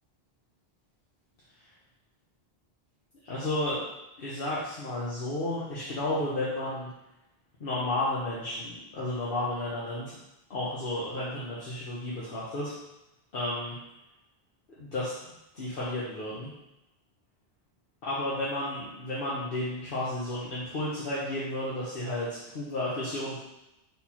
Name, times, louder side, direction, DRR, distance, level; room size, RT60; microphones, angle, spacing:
voice 1, 3.2-3.8 4.2-6.9 7.6-10.2 10.5-12.8 13.3-13.7 14.8-15.1 15.5-16.5 18.0-23.4, left 1 dB, 60° left, -9 dB, 1.1 m, -32 dB
4.3 x 3.5 x 2.9 m, 0.93 s
omnidirectional pair, 1.1 m